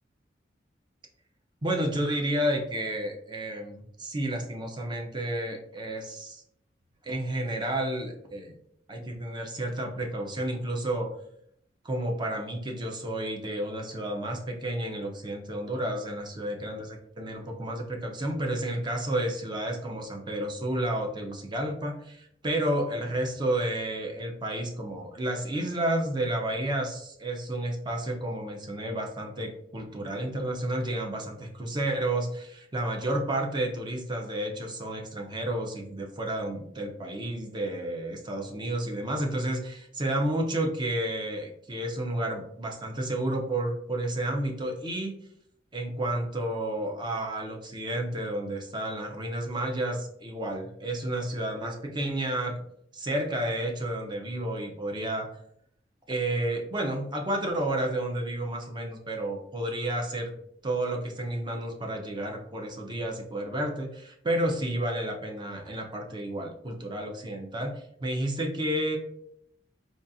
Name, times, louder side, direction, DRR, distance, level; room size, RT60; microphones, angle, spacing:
voice 1, 1.6-6.4 7.0-8.6 8.9-11.1 11.8-45.2 45.7-52.6 52.9-55.3 56.1-60.3 60.6-67.7 68.0-69.0, right 1 dB, 25° right, 1 dB, 0.5 m, -31 dB
3.9 x 2.3 x 2.6 m, 0.71 s
head